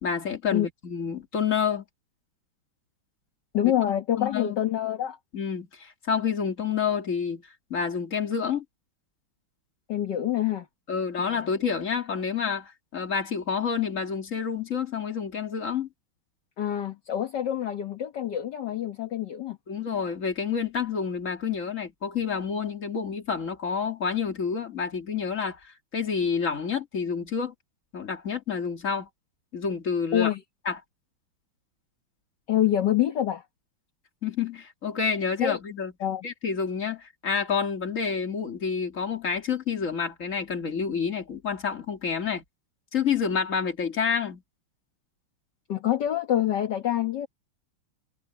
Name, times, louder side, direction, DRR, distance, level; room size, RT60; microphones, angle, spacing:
voice 1, 0.0-1.8 4.2-4.6 5.3-7.4 7.7-8.6 10.9-15.9 19.7-27.5 27.9-29.1 29.5-30.3 30.7-30.8 34.2-35.9 36.2-42.4 42.9-44.4, left 6 dB, 35° left, 2.6 m, -28 dB
voice 2, 3.5-5.2 9.9-10.7 11.2-11.5 16.6-19.6 30.1-30.4 32.5-33.4 35.4-35.6 36.0-36.3 45.7-47.3, left 11 dB, 55° left, 1.9 m, -26 dB
omnidirectional pair, 2.3 m